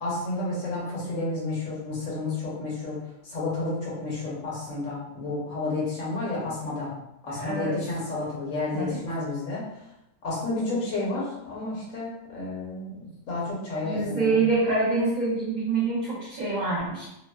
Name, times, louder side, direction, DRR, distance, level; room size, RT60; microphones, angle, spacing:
voice 1, 0.0-3.0 3.2-6.9 7.2-9.6 10.2-14.4, left 2 dB, 65° left, -6 dB, 1.2 m, -31 dB
voice 2, 7.3-7.8 8.7-9.0 13.8-17.0, right 3 dB, 45° right, -8 dB, 0.6 m, -26 dB
2.8 x 2.0 x 2.2 m, 0.85 s
omnidirectional pair, 1.5 m